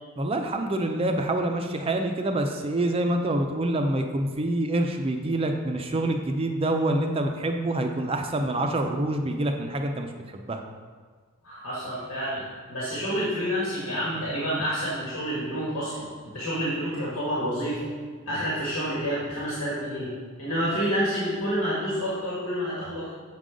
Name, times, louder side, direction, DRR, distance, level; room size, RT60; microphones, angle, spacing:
voice 1, 0.2-10.6, right 1 dB, 25° right, 4 dB, 0.4 m, -26 dB
voice 2, 11.4-12.4 12.7-16.1 16.3-17.8 18.3-20.1 20.4-23.2, equal, 85° left, -8 dB, 1.7 m, -28 dB
7.3 x 3.8 x 5.0 m, 1.5 s
head